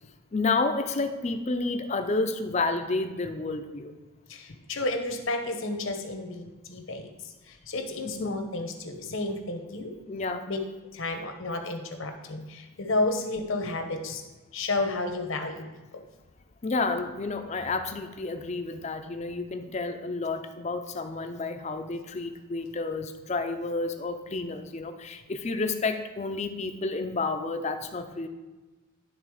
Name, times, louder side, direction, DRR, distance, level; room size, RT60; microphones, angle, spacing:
voice 1, 0.3-3.9 8.0-8.4 10.1-10.5 16.6-28.3, left 3 dB, 30° left, 8 dB, 0.5 m, -30 dB
voice 2, 4.3-9.9 10.5-10.6 10.9-14.2 14.5-16.0, left 2 dB, 70° left, 5 dB, 1.0 m, -32 dB
11.5 x 3.9 x 4.8 m, 1.2 s
head